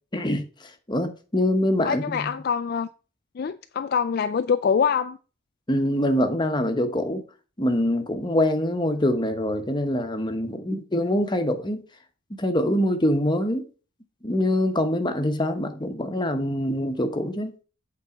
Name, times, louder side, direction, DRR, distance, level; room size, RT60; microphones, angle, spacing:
voice 1, 0.1-2.3 5.7-7.2 7.6-11.8 12.4-13.6 14.2-17.5, left 1 dB, 20° left, 0.9 m, -24 dB
voice 2, 1.8-2.9 3.4-5.2, left 6 dB, 45° left, 0.3 m, -24 dB
8.3 x 4.1 x 6.1 m
head